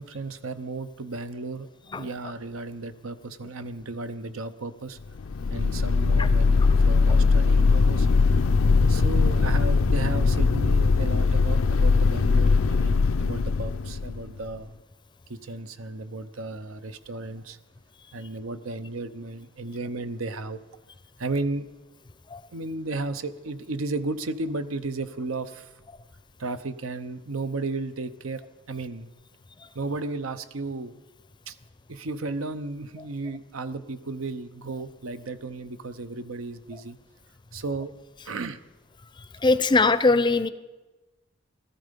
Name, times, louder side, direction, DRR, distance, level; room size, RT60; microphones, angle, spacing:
voice 1, 0.0-1.7 2.0-5.0 5.5-8.1 8.9-14.7 15.3-17.6 18.1-20.6 21.2-21.7 22.5-25.7 26.4-28.4 28.7-29.1 29.7-31.0 31.5-31.6 31.9-37.0 37.5-37.9 38.3-38.6, right 3 dB, 85° right, 11 dB, 0.8 m, -34 dB
sound 1, 5.2-14.5, left 4 dB, 85° left, 0.5 m, -21 dB
voice 2, 39.4-40.5, left 3 dB, 20° left, 14 dB, 0.5 m, -20 dB
17.0 x 13.0 x 5.2 m, 1.1 s
head